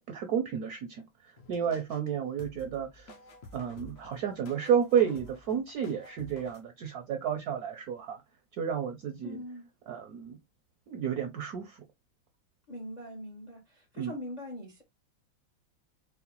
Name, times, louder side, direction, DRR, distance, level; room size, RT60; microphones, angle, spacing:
voice 1, 0.1-3.1 3.5-8.2 8.5-9.4 9.9-10.4 10.9-11.8 14.0-14.1, right 8 dB, 75° right, 0.9 m, -31 dB
sound 1, 1.4-2.1 2.4-6.6, left 2 dB, 60° left, 0.9 m, -51 dB
voice 2, 9.2-9.7 12.7-14.8, left 1 dB, 80° left, 0.3 m, -42 dB
4.7 x 2.0 x 2.9 m
omnidirectional pair, 2.2 m